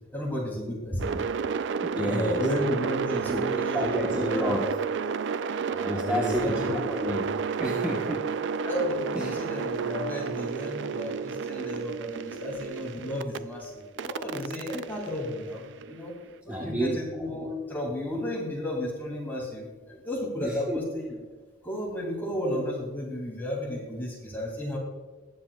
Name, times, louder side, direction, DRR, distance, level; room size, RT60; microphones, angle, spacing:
voice 1, 0.1-1.0 2.0-4.7 5.7-6.9 8.6-16.1 16.4-21.2 21.6-24.8, left 1 dB, 10° left, -3 dB, 2.7 m, -33 dB
sound 1, 1.0-13.4 14.0-16.1, right 6 dB, 65° right, 0.3 m, -31 dB
voice 2, 1.8-2.4 3.3-4.6 5.8-7.3 7.6-8.2 9.1-9.3 16.5-17.0 20.4-20.8, equal, 10° right, -3 dB, 1.1 m, -30 dB
20.0 x 7.5 x 2.3 m, 1.3 s
head